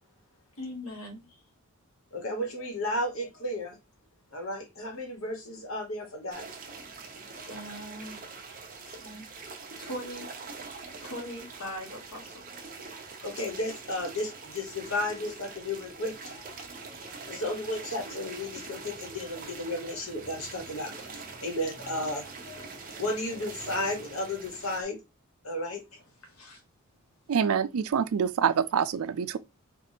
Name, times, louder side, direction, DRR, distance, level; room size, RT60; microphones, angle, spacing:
voice 1, 0.6-1.4 7.5-8.3 8.9-9.3 9.8-10.3 11.0-12.4 24.8-24.9 26.2-26.6 28.0-28.2, equal, 85° left, 1.6 m, -41 dB
voice 2, 2.1-3.8 4.3-6.4 7.3-7.5 13.2-20.9 21.4-25.0 25.4-25.8, left 1 dB, 70° left, 1.3 m, -34 dB
sound 1, 6.3-24.8, right 4 dB, 40° right, 0.8 m, -44 dB
voice 3, 27.3-29.4, right 7 dB, 75° right, 0.4 m, -26 dB
4.7 x 2.5 x 2.8 m
head